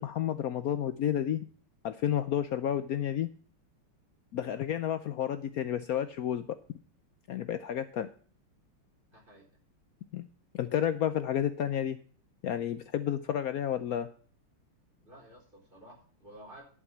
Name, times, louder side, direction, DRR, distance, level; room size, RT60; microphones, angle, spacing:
voice 1, 0.0-1.4 1.8-3.3 4.3-6.5 7.3-8.1 10.1-10.3 10.5-12.0 12.4-14.1, left 10 dB, 85° left, 11 dB, 0.7 m, -31 dB
voice 2, 9.1-9.5 15.0-16.6, right 1 dB, 25° right, -1 dB, 4.0 m, -52 dB
11.0 x 6.0 x 7.2 m, 0.44 s
omnidirectional pair, 2.3 m